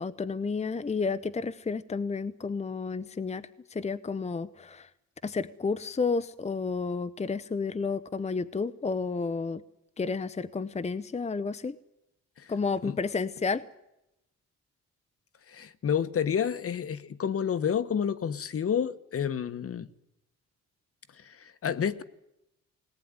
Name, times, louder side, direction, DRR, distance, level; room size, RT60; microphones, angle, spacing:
voice 1, 0.0-4.9 5.2-9.6 10.0-11.7 12.5-13.6, left 4 dB, 20° left, 0.9 m, -31 dB
voice 2, 15.5-19.9 21.1-22.0, left 8 dB, 50° left, 1.3 m, -30 dB
21.0 x 18.5 x 9.7 m
cardioid pair, 90°, 30 cm